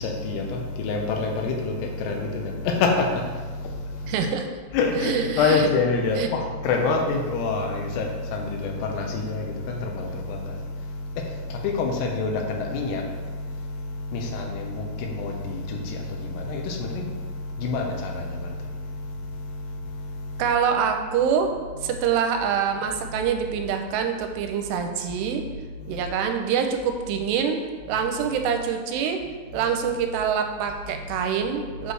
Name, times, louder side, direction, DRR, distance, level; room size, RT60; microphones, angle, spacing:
voice 1, 0.0-4.2 4.7-20.5 21.8-21.9 22.9-23.1 25.1-25.2 25.6-26.0 27.9-28.0 29.2-29.7 30.9-31.2 31.8-31.9, left 3 dB, 80° left, 2 dB, 2.8 m, -28 dB
voice 2, 4.1-4.4 5.0-5.2 6.2-6.3 20.4-21.5 21.8-25.4 25.9-27.6 27.9-29.2 29.5-31.9, right 7 dB, 85° right, 5 dB, 2.7 m, -25 dB
7.9 x 3.2 x 6.2 m, 1.5 s
omnidirectional pair, 4.8 m